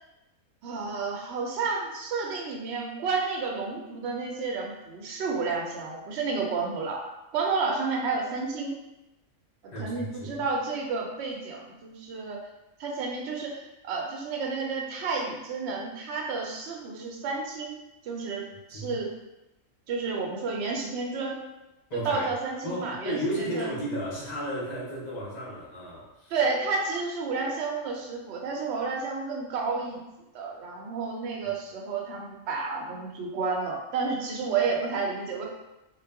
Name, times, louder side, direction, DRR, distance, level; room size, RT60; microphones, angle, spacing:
voice 1, 0.6-7.0 7.3-8.8 9.8-12.4 12.8-17.8 18.0-18.4 18.7-19.1 19.9-21.4 21.9-23.7 26.3-30.0 30.3-35.5, right 4 dB, 65° right, -1 dB, 0.7 m, -31 dB
voice 2, 9.7-10.4 18.7-19.0 21.9-22.3 22.6-26.3, equal, 55° left, -6 dB, 0.4 m, -34 dB
2.3 x 2.0 x 3.3 m, 0.96 s
omnidirectional pair, 1.5 m